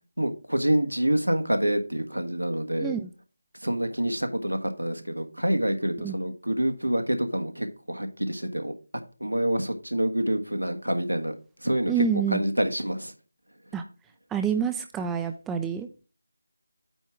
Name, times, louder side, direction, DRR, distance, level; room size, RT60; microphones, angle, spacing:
voice 1, 0.2-2.9 3.6-8.7 9.2-11.3 11.6-13.1, right 1 dB, 85° right, 6 dB, 1.5 m, -27 dB
voice 2, 2.8-3.1 6.0-6.1 11.9-12.4 13.7-13.8 14.3-15.9, right 7 dB, 5° right, 7 dB, 0.4 m, -27 dB
8.9 x 3.6 x 5.8 m, 0.33 s
figure-of-eight pair, 160°, 0 cm